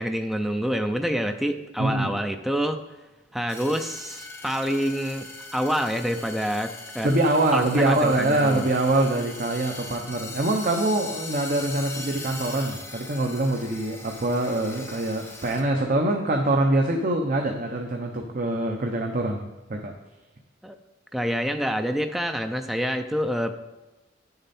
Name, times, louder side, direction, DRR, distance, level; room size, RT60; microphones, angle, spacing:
voice 1, 0.0-2.8 3.3-7.1 7.5-8.7 20.6-20.8 21.1-23.5, equal, ahead, 6 dB, 0.5 m, -27 dB
voice 2, 1.8-2.1 7.0-19.4 19.7-19.9, right 2 dB, 50° right, 2 dB, 0.8 m, -24 dB
sound 1, 3.5-15.6, left 3 dB, 15° left, 1.3 m, -40 dB
9.9 x 6.7 x 4.2 m, 1.1 s
head